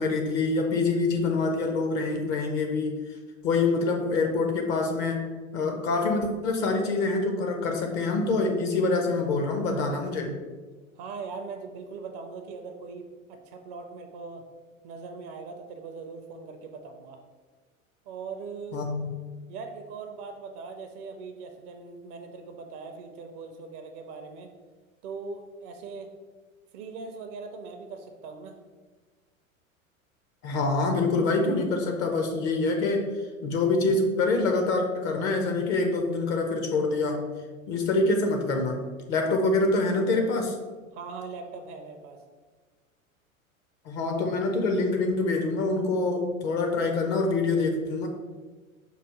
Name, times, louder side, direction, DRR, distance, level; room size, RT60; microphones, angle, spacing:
voice 1, 0.0-3.0 3.4-10.4 18.7-19.1 30.4-33.1 33.4-37.3 37.7-38.8 39.1-40.5 43.9-48.1, left 3 dB, 25° left, 3 dB, 0.4 m, -25 dB
voice 2, 10.9-14.4 14.8-17.2 18.1-18.8 19.5-24.5 25.0-26.1 26.7-28.6 40.9-42.2, right 4 dB, 35° right, 5 dB, 0.4 m, -40 dB
4.8 x 2.3 x 4.6 m, 1.4 s
figure-of-eight pair, 85°, 41 cm